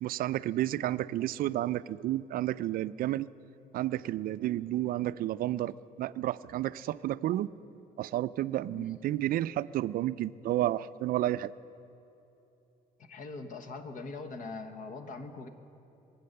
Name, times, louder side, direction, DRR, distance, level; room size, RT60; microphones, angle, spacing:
voice 1, 0.0-3.3 3.7-7.5 8.0-11.5, right 14 dB, 60° right, 16 dB, 0.4 m, -31 dB
voice 2, 13.0-15.5, left 3 dB, 50° left, 8 dB, 1.3 m, -42 dB
23.0 x 8.6 x 6.7 m, 3.0 s
cardioid pair, 110°, 17 cm